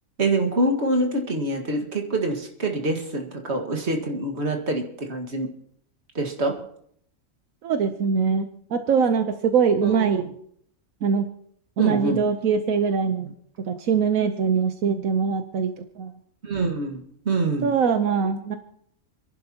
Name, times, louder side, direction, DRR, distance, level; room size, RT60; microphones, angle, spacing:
voice 1, 0.2-5.5 6.1-6.7 9.8-10.3 11.8-12.2 16.4-17.7, right 2 dB, 55° right, 2 dB, 2.1 m, -25 dB
voice 2, 7.6-10.2 11.0-11.3 11.8-13.3 13.7-16.1 17.6-18.6, right 6 dB, 80° right, 7 dB, 1.3 m, -22 dB
29.0 x 11.5 x 2.9 m, 0.67 s
omnidirectional pair, 1.4 m